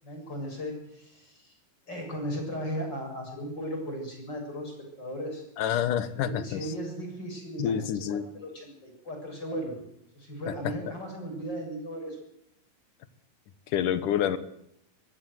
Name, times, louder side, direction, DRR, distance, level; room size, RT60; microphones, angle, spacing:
voice 1, 0.0-1.6 1.9-4.7 5.0-5.4 6.1-9.8 10.1-12.2, equal, 25° left, 2 dB, 7.7 m, -36 dB
voice 2, 5.6-6.7 7.6-8.2 10.5-10.7 13.7-14.4, left 9 dB, 65° left, 14 dB, 2.5 m, -28 dB
24.0 x 15.5 x 7.9 m, 0.79 s
omnidirectional pair, 4.5 m